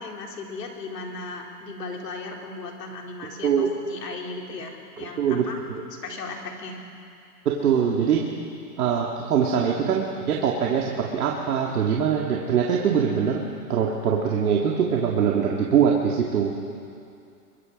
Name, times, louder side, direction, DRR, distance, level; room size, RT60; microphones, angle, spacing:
voice 1, 0.0-5.6 6.0-6.8, left 3 dB, 80° left, 0 dB, 4.1 m, -36 dB
voice 2, 5.0-5.8 7.5-8.3 8.8-13.4 13.7-16.5, right 7 dB, 65° right, -1 dB, 2.4 m, -23 dB
23.5 x 23.0 x 5.3 m, 2.5 s
hypercardioid pair, 160°, 48 cm